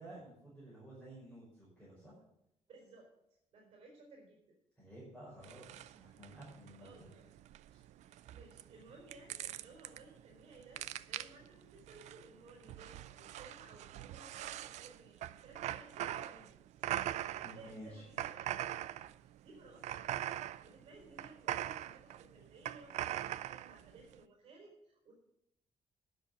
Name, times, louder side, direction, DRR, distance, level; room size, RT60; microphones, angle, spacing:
voice 1, 0.0-2.1 4.8-7.1 7.7-7.8 17.4-18.0, right 1 dB, 5° left, -9 dB, 5.2 m, -53 dB
voice 2, 2.7-3.1 3.5-4.5 6.8-7.3 8.0-16.8 17.4-18.9 19.2-20.3 20.6-25.1, right 3 dB, 50° right, 0 dB, 4.2 m, -58 dB
sound 1, 5.4-24.2, right 12 dB, 90° right, 0.4 m, -42 dB
10.5 x 6.5 x 8.6 m, 0.80 s
cardioid pair, 160°, 12 cm